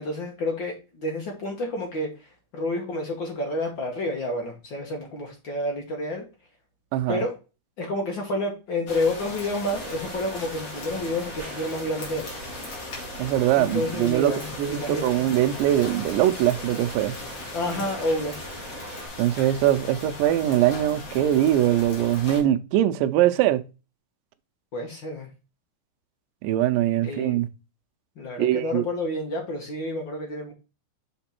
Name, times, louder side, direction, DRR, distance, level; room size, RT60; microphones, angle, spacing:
voice 1, 0.0-2.1 2.5-6.2 7.1-7.3 7.8-12.3 12.6-12.7 13.6-15.1 17.5-18.5 24.7-25.3 27.0-27.4 28.2-30.5, left 1 dB, 65° left, 1.1 m, -29 dB
sound 1, 8.9-22.4, left 2 dB, 40° left, 2.1 m, -38 dB
sound 2, 9.7-19.1, right 1 dB, 40° right, 1.0 m, -42 dB
voice 2, 13.2-17.2 19.2-23.6 26.4-27.5 28.4-28.9, right 12 dB, 80° right, 2.2 m, -22 dB
6.0 x 4.6 x 4.3 m
omnidirectional pair, 4.1 m